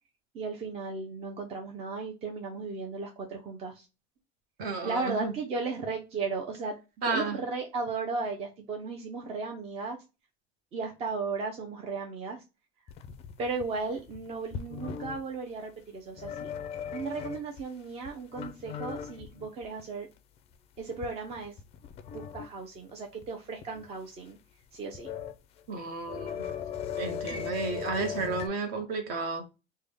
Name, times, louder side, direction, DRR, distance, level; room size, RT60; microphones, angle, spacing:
voice 1, 0.3-3.9 4.8-6.7 7.0-10.0 10.7-12.4 13.4-16.5 16.9-20.1 20.8-21.5 22.1-24.4 24.7-25.1 27.3-27.5, right 4 dB, 30° right, 0.6 m, -35 dB
voice 2, 4.6-5.3 7.0-7.4 25.7-26.4 27.0-29.5, right 4 dB, 50° right, 1.0 m, -32 dB
sound 1, 12.9-15.2 16.1-17.6 18.0-19.8 20.2-20.3 20.8-22.5 22.9-23.0 23.2-23.3 23.6-23.9 24.7-25.3 25.6-28.5, left 8 dB, 30° left, 0.4 m, -38 dB
3.4 x 2.2 x 3.3 m
cardioid pair, 155°, 20 cm